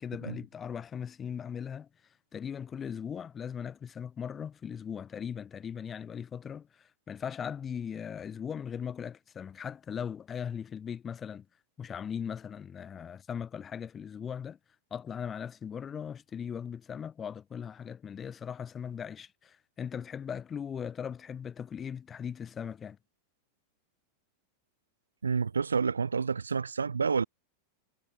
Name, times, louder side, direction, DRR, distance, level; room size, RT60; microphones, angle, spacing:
voice 1, 0.0-1.9 2.3-11.5 11.8-14.6 14.9-23.0, left 7 dB, 20° left, 2.2 m, -39 dB
voice 2, 25.2-27.2, right 5 dB, 75° right, 0.7 m, -29 dB
figure-of-eight pair, 90°, 0 cm